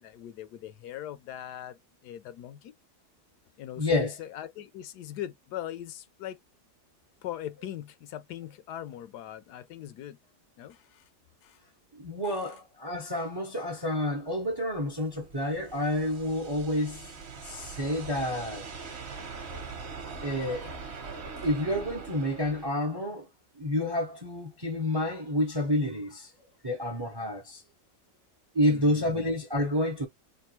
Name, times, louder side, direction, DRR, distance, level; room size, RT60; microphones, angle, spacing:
voice 1, 0.0-2.7 3.6-6.4 7.2-10.2 10.6-11.0 11.4-11.6 12.2-12.4 21.4-21.5 28.7-29.2, left 11 dB, 80° left, 1.2 m, -40 dB
voice 2, 3.8-4.1 12.0-17.1 17.4-18.7 20.2-20.7 21.4-23.3 23.5-26.3 26.6-27.6 28.5-30.1, left 1 dB, 25° right, 0.5 m, -29 dB
sound 1, 14.4-22.7, right 4 dB, 45° right, 1.1 m, -42 dB
3.5 x 2.3 x 4.3 m
omnidirectional pair, 1.7 m